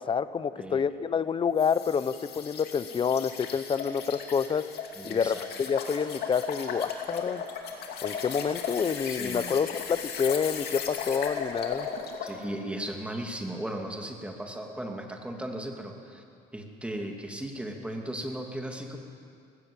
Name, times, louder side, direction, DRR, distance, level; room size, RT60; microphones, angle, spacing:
voice 1, 0.0-4.7 5.0-7.4 8.0-11.9, left 6 dB, 30° left, 14 dB, 0.7 m, -28 dB
voice 2, 0.6-0.9 4.9-5.5 9.0-9.7 12.2-16.2 16.5-19.0, right 1 dB, 5° right, 2 dB, 2.5 m, -36 dB
sound 1, 1.6-12.4, left 6 dB, 70° left, 2.6 m, -37 dB
19.0 x 16.5 x 8.3 m, 2.3 s
cardioid pair, 110°, 17 cm